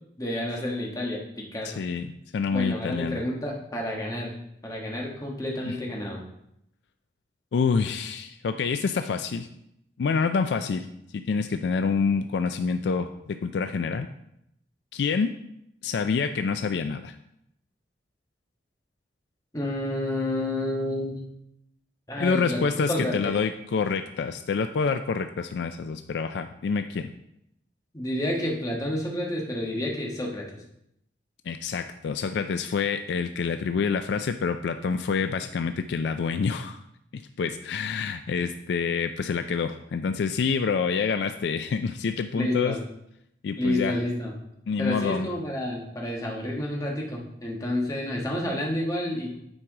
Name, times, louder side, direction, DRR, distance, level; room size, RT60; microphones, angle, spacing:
voice 1, 0.2-1.2 1.5-1.8 2.5-4.3 4.6-6.2 19.5-21.3 22.1-22.6 22.9-23.3 27.9-30.5 42.3-42.8 43.6-44.3 44.8-49.4, left 1 dB, 20° left, -2 dB, 1.3 m, -29 dB
voice 2, 1.6-3.2 5.7-5.8 7.5-9.5 10.0-10.9 11.1-14.1 14.9-15.4 15.8-17.1 22.2-27.1 31.5-36.8 37.1-42.8 43.4-44.0 44.7-45.3, left 5 dB, 70° left, 8 dB, 0.3 m, -27 dB
8.9 x 4.7 x 3.6 m, 0.77 s
head